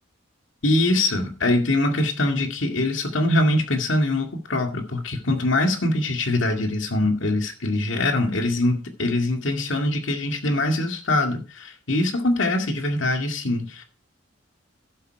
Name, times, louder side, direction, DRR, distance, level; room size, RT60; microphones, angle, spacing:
voice 1, 0.6-13.8, left 1 dB, 80° left, 2.2 m, -23 dB
11.5 x 7.9 x 4.7 m
head